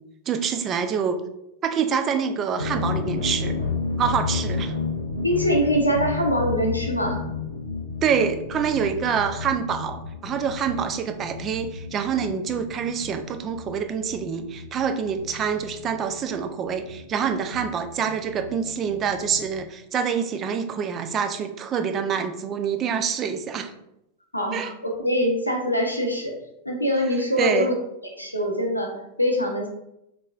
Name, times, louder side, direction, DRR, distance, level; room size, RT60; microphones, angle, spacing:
voice 1, 0.3-1.2 1.6-3.6 4.0-4.7 8.0-23.7 24.5-24.7 27.4-27.7, right 7 dB, 30° right, 7 dB, 0.3 m, -26 dB
sound 1, 2.6-19.6, left 4 dB, 85° right, 0.6 m, -32 dB
voice 2, 5.2-7.2 24.3-26.3 26.6-27.7 28.2-29.7, equal, 85° left, 2 dB, 0.6 m, -24 dB
3.6 x 3.0 x 2.4 m, 0.82 s
figure-of-eight pair, 90°, 0 cm